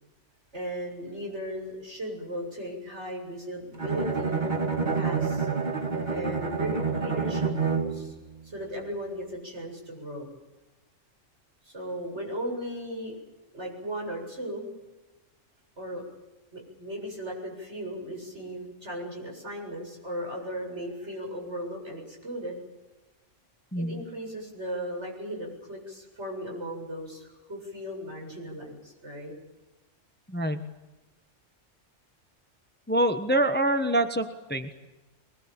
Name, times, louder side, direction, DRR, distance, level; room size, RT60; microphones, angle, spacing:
voice 1, 0.5-4.4 4.9-5.5 6.1-8.1 8.4-10.3 11.6-13.2 13.5-14.7 15.8-16.0 16.5-22.6 23.7-29.3, equal, 60° right, 1 dB, 7.9 m, -36 dB
Bowed string instrument, 3.8-8.2, right 5 dB, 35° right, 2.8 m, -28 dB
voice 2, 30.3-30.7 32.9-34.7, right 1 dB, 10° left, 8 dB, 1.2 m, -25 dB
23.5 x 21.0 x 9.0 m, 1.1 s
omnidirectional pair, 1.3 m